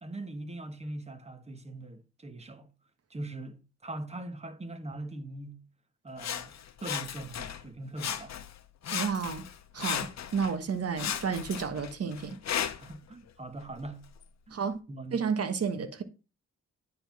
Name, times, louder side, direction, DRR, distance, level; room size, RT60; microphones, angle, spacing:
voice 1, 0.0-2.7 3.1-5.6 6.0-6.5 6.8-8.4 12.8-14.1 14.5-14.6 14.9-15.5, right 2 dB, 20° right, 1.3 m, -41 dB
Sawing, 6.2-7.7 8.0-8.6 8.8-10.5 11.0-13.0 13.6-13.7, left 9 dB, 65° left, 0.9 m, -35 dB
voice 2, 8.9-9.4 9.7-12.4 14.5-14.8 15.1-16.0, right 6 dB, 55° right, 1.3 m, -31 dB
9.8 x 3.8 x 6.0 m
cardioid pair, 95°, 30 cm